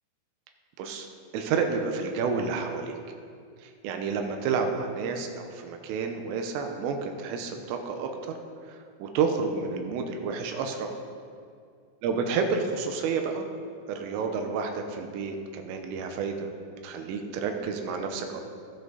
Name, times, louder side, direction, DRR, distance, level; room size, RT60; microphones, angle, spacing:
voice 1, 1.3-3.0 3.6-8.4 9.0-10.9 12.0-13.5 13.9-16.5 16.8-18.4, right 5 dB, 85° right, 4 dB, 3.6 m, -30 dB
21.0 x 8.2 x 4.0 m, 2.3 s
omnidirectional pair, 5.7 m